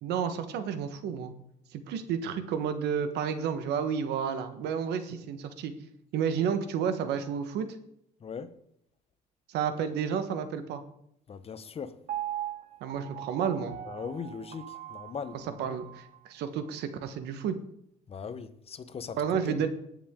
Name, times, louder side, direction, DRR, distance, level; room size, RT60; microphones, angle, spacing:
voice 1, 0.0-1.3 1.7-5.7 6.1-7.8 9.5-10.8 12.8-13.7 15.6-17.6 19.2-19.7, right 7 dB, 80° right, 1.3 m, -31 dB
voice 2, 8.2-8.5 11.3-12.0 13.9-15.8 18.1-19.2 19.5-19.6, left 6 dB, 35° left, 0.9 m, -39 dB
Piano, 12.1-16.2 16.7-16.8, right 12 dB, 50° right, 0.8 m, -40 dB
18.5 x 7.3 x 3.7 m
cardioid pair, 110°, 17 cm